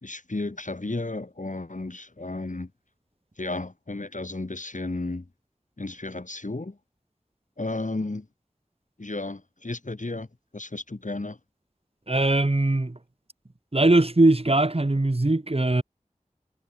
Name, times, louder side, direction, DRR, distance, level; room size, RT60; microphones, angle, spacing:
voice 1, 0.0-2.7 3.4-5.3 5.8-6.8 7.6-8.3 9.0-10.3 10.5-11.4, left 2 dB, 70° left, 3.9 m, -33 dB
voice 2, 12.1-13.0 13.7-15.8, right 2 dB, 45° right, 2.0 m, -21 dB
wide cardioid pair, 45°, 13 cm